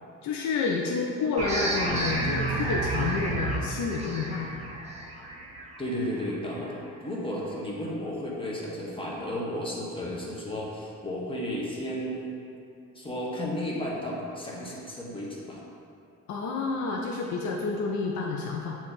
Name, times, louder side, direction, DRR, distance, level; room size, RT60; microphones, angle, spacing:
voice 1, 0.2-4.5 16.3-18.8, left 4 dB, 70° left, 0 dB, 0.6 m, -29 dB
sound 1, 1.4-6.7, right 2 dB, 20° right, 1.2 m, -31 dB
voice 2, 5.8-6.7 7.0-12.4 12.9-15.6, equal, 15° left, -5 dB, 1.3 m, -33 dB
7.6 x 3.1 x 4.0 m, 2.7 s
cardioid pair, 90°, 30 cm